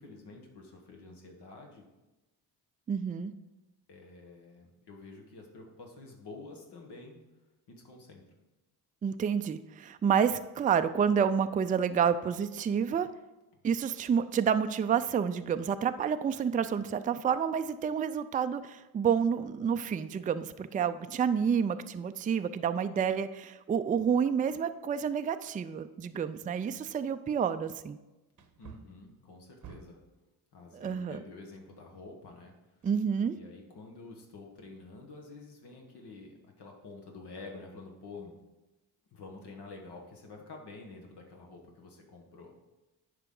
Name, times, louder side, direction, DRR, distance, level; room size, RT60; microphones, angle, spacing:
voice 1, 0.0-1.8 3.9-7.2 7.7-8.2 28.6-30.0 30.5-32.8 33.3-38.3 39.1-42.7, left 3 dB, 70° left, 1 dB, 1.4 m, -49 dB
voice 2, 2.9-3.3 9.0-13.1 13.6-28.0 30.7-31.2 32.8-33.4, right 7 dB, 20° right, 10 dB, 0.3 m, -29 dB
Wood, 28.3-30.2 32.8-33.6 34.0-34.1, right 7 dB, 45° right, 0.8 m, -53 dB
9.0 x 5.1 x 3.8 m, 1.0 s
cardioid pair, 70°, 41 cm